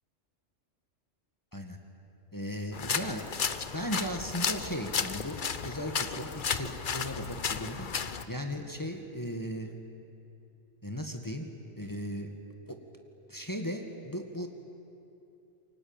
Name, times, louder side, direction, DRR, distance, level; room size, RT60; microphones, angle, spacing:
voice 1, 2.3-3.3 3.7-7.9 8.3-9.7 10.8-11.5 11.8-12.3 12.7-12.8 13.3-14.5, equal, 15° left, 4 dB, 1.8 m, -36 dB
sound 1, 2.7-8.3, left 6 dB, 45° left, 0.9 m, -33 dB
28.5 x 23.5 x 8.9 m, 2.8 s
omnidirectional pair, 1.3 m